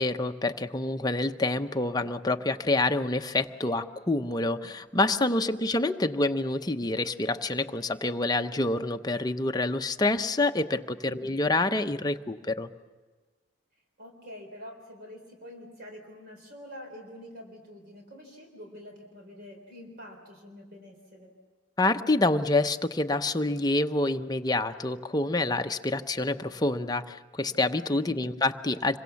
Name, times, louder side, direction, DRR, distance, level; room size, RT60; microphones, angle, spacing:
voice 1, 0.0-12.7 21.8-29.0, left 2 dB, 20° left, 7 dB, 0.8 m, -27 dB
voice 2, 5.2-5.6 11.0-11.4 14.0-21.3 28.0-28.3, left 1 dB, 55° right, 2 dB, 3.7 m, -46 dB
26.5 x 23.5 x 7.1 m, 1.4 s
head